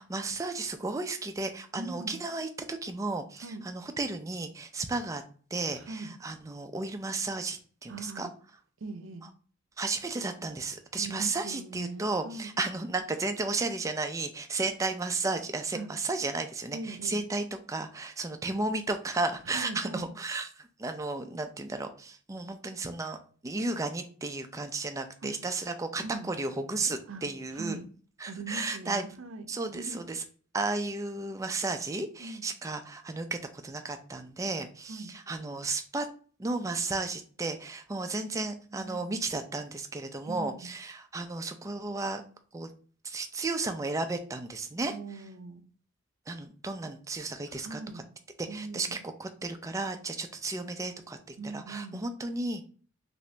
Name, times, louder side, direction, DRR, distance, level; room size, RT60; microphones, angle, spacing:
voice 1, 0.0-5.2 5.5-8.3 9.8-23.2 23.4-27.8 28.2-29.0 29.5-30.2 30.5-36.1 36.4-42.2 42.5-42.7 43.0-44.9 46.3-47.8 48.4-52.6, right 3 dB, 15° right, 0.3 m, -33 dB
voice 2, 1.8-2.2 3.4-3.7 5.7-6.2 7.9-8.3 8.8-9.3 11.0-12.5 15.7-15.9 16.7-17.2 19.5-20.1 25.2-25.3 25.9-26.3 27.1-27.2 27.5-27.9 28.2-29.5 29.7-30.0 32.2-32.5 34.9-35.1 38.3-39.3 40.3-40.7 44.9-45.6 47.5-48.1 48.5-49.0 51.4-52.1, right 3 dB, 70° right, 0.5 m, -41 dB
2.9 x 2.6 x 3.2 m
head